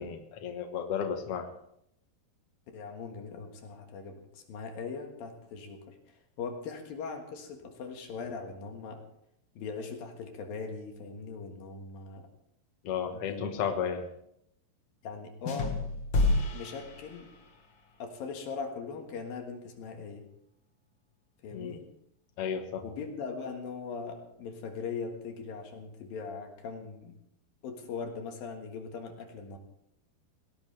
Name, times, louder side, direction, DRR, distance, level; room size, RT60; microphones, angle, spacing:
voice 1, 0.0-1.5 12.8-14.1 21.5-21.8 22.4-22.8, left 7 dB, 85° left, 5 dB, 1.3 m, -33 dB
voice 2, 2.7-9.0 9.5-12.3 13.1-13.5 15.0-15.7 16.5-17.3 18.0-20.2 21.4-21.8 22.8-27.2 27.6-29.6, left 5 dB, 65° left, 4 dB, 3.1 m, -40 dB
sound 1, 15.5-17.7, left 2 dB, 50° left, 1.5 m, -30 dB
19.0 x 17.5 x 3.3 m, 0.75 s
omnidirectional pair, 4.8 m